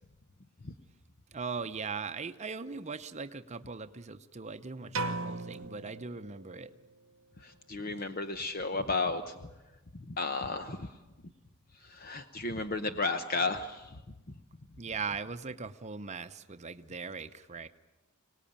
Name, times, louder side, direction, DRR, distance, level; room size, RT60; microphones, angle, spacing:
voice 1, 1.3-6.7 14.8-17.7, right 4 dB, 30° right, 9 dB, 0.8 m, -39 dB
sound 1, 4.9-6.8, right 3 dB, 70° right, 1.0 m, -37 dB
voice 2, 7.4-9.3 9.9-10.9 11.9-13.9, left 3 dB, 45° left, 9 dB, 0.9 m, -33 dB
25.5 x 18.5 x 8.8 m, 1.1 s
head